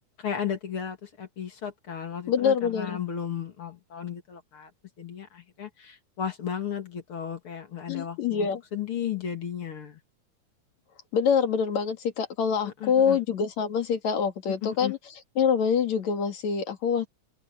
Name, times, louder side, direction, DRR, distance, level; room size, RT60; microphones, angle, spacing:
voice 1, 0.2-4.7 5.0-10.0 12.6-13.2 14.6-14.9, left 8 dB, 45° left, 3.0 m, -34 dB
voice 2, 2.3-3.0 7.9-8.6 11.1-15.0 15.4-17.1, left 6 dB, 60° left, 3.4 m, -25 dB
open air
omnidirectional pair, 3.6 m